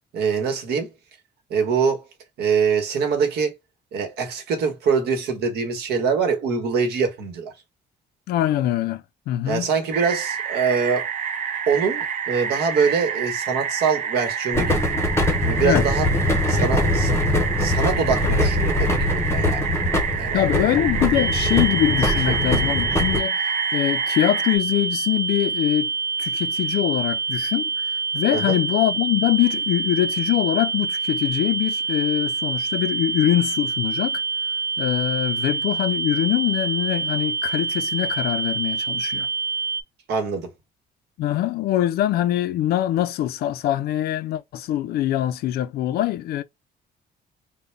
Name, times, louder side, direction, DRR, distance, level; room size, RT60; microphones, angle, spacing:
voice 1, 0.1-0.9 1.5-2.0 2.4-3.5 3.9-7.5 9.5-11.1 11.7-14.8 15.4-16.1 16.5-17.1 17.6-19.6 20.2-20.4 22.2-22.7 28.3-28.6 40.1-40.5, right 5 dB, 70° right, 1.3 m, -24 dB
voice 2, 8.3-9.7 15.6-15.8 20.3-23.4 23.7-25.9 26.2-34.2 34.8-39.3 41.2-46.4, left 13 dB, 65° left, 0.4 m, -23 dB
sound 1, 9.9-24.6, right 7 dB, 45° right, 0.6 m, -28 dB
sound 2, 14.5-23.2, left 1 dB, 15° left, 0.8 m, -22 dB
sound 3, 21.1-39.8, right 4 dB, 20° right, 0.8 m, -26 dB
3.9 x 2.2 x 3.3 m
cardioid pair, 170°, 17 cm